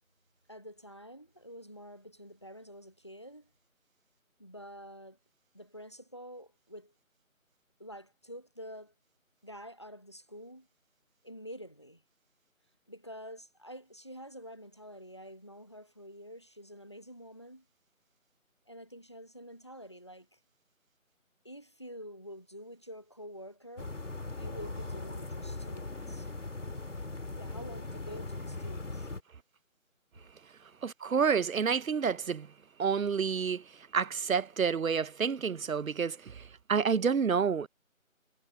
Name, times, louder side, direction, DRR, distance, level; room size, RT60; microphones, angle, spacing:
voice 1, 0.5-3.5 4.4-5.2 5.5-6.9 7.8-8.9 9.4-10.7 11.2-12.0 12.9-17.6 18.7-20.4 21.4-23.9 24.3-26.3 27.3-29.1, equal, 20° left, 1.0 m, -48 dB
sound 1, 23.8-29.2, left 2 dB, 60° left, 2.8 m, -39 dB
voice 2, 30.8-32.5 32.8-37.7, right 6 dB, 75° right, 0.7 m, -29 dB
figure-of-eight pair, 170°, 41 cm